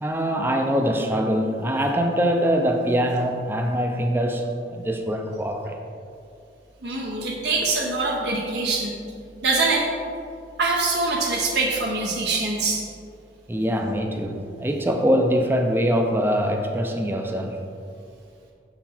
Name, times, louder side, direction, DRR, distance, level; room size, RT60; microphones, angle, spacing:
voice 1, 0.0-5.8 13.5-17.6, equal, 10° right, 3 dB, 0.4 m, -23 dB
voice 2, 6.8-9.0 9.4-9.9 10.6-12.8, right 3 dB, 70° right, -1 dB, 0.7 m, -24 dB
6.1 x 4.0 x 4.3 m, 2.4 s
head